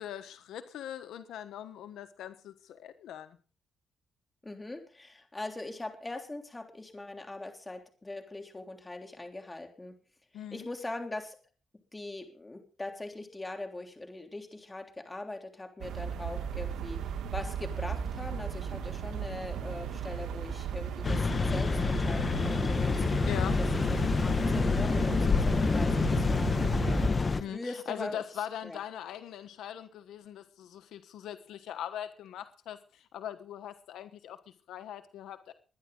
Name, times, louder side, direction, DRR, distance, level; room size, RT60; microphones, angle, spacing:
voice 1, 0.0-3.4 10.3-10.7 23.3-23.6 27.4-34.4 34.7-35.5, left 10 dB, 85° left, 9 dB, 1.2 m, -41 dB
voice 2, 4.4-10.0 10.3-11.3 11.9-23.0 23.6-26.5 26.8-28.2 28.6-28.8, left 2 dB, 20° left, 4 dB, 3.4 m, -41 dB
sound 1, 15.8-27.1, right 8 dB, 85° right, 1.6 m, -36 dB
sound 2, 21.0-27.4, left 4 dB, 35° left, 1.1 m, -27 dB
21.5 x 10.5 x 3.9 m, 0.38 s
cardioid pair, 80°, 0 cm